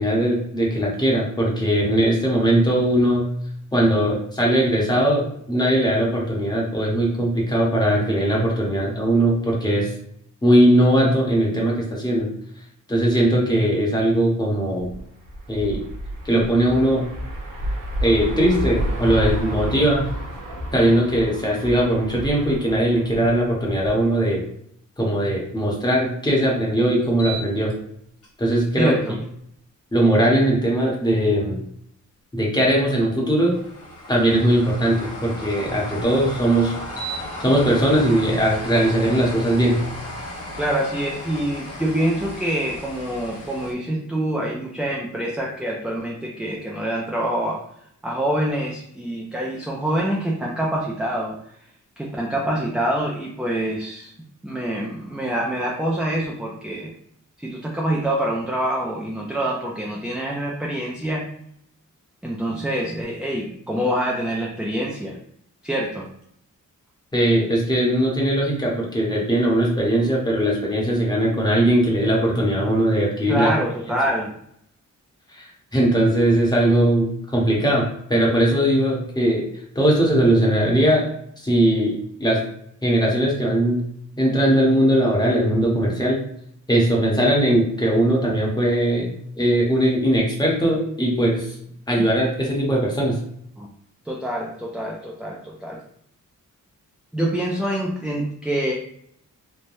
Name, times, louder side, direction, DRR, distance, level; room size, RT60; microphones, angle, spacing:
voice 1, 0.0-3.3 3.7-9.9 10.4-12.3 12.9-14.9 15.5-15.8 16.2-17.1 18.0-20.1 20.7-24.4 25.0-27.7 28.4-29.0 29.9-31.6 32.3-33.5 34.1-36.7 37.4-39.8 67.1-73.5 75.3-79.4 79.7-81.0 81.4-82.4 82.8-83.8 84.2-86.2 86.7-91.6 91.9-93.2, right 1 dB, 15° left, -3 dB, 0.9 m, -20 dB
sound 1, 14.8-24.0, equal, 85° right, 0.8 m, -30 dB
sound 2, 27.1-27.7 28.2-28.3 33.5-43.7, equal, 50° left, 1.0 m, -35 dB
voice 2, 28.8-29.2 40.6-47.7 48.0-51.4 52.0-54.1 54.4-56.9 57.4-61.3 62.2-65.2 65.6-66.1 73.3-74.3 92.0-92.1 93.6-93.7 94.1-95.8 97.1-98.7, right 1 dB, 5° right, -2 dB, 0.3 m, -25 dB
3.2 x 2.1 x 2.6 m, 0.70 s
wide cardioid pair, 95°, 32 cm